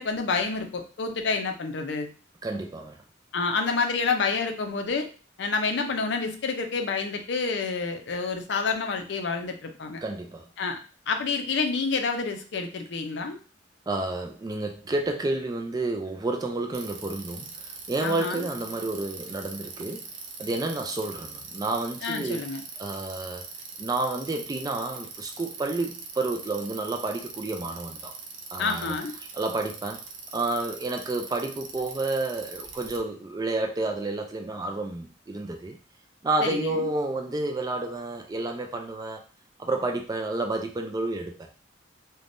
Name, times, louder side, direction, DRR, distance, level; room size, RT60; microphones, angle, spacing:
voice 1, 0.0-2.1 3.3-5.1 5.4-10.0 10.6-10.8 11.1-13.4 18.0-18.5 22.0-22.6 28.6-29.1 36.4-36.9, left 4 dB, 60° left, 5 dB, 0.5 m, -28 dB
voice 2, 2.4-3.0 10.0-10.5 13.9-20.1 20.4-22.4 22.8-23.5 23.8-28.1 28.5-29.0 29.3-30.0 30.3-35.8 36.2-39.2 39.6-41.5, right 2 dB, 20° right, 3 dB, 0.3 m, -30 dB
Bicycle, 16.7-33.0, right 4 dB, 75° right, 0.5 m, -42 dB
3.3 x 2.1 x 2.5 m, 0.36 s
head